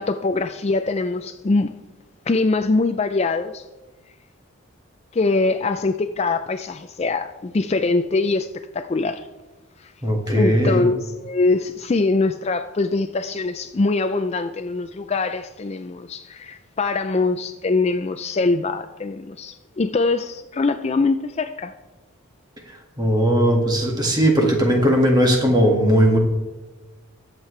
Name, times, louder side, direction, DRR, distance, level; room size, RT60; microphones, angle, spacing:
voice 1, 0.0-1.7 2.3-3.6 5.1-9.3 9.8-9.9 10.3-21.7, left 3 dB, 30° left, 0.3 m, -23 dB
voice 2, 10.0-10.8 22.7-26.2, equal, 20° right, 1.8 m, -18 dB
21.5 x 7.4 x 3.2 m
head